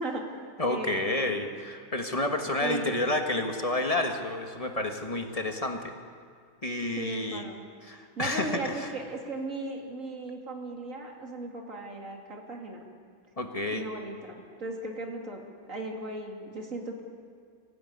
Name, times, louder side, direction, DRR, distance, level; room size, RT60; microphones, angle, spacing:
voice 1, 0.0-1.4 2.6-2.9 7.0-7.6 8.2-12.9 13.7-17.0, right 2 dB, 60° right, 1 dB, 3.1 m, -37 dB
voice 2, 0.6-5.9 6.6-7.4 7.8-8.9 13.4-13.9, left 2 dB, 25° left, 4 dB, 1.5 m, -30 dB
24.0 x 17.0 x 9.5 m, 2.1 s
omnidirectional pair, 1.5 m